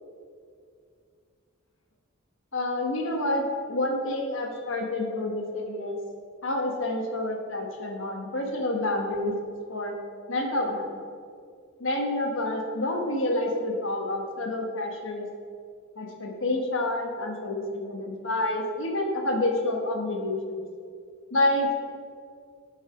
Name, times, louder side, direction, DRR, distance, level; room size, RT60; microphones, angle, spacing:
voice 1, 2.5-3.4 3.7-6.0 6.4-9.9 10.3-11.0 11.8-15.2 16.0-20.6 21.3-21.7, left 1 dB, 60° left, 2 dB, 1.3 m, -28 dB
9.0 x 7.5 x 5.0 m, 2.3 s
head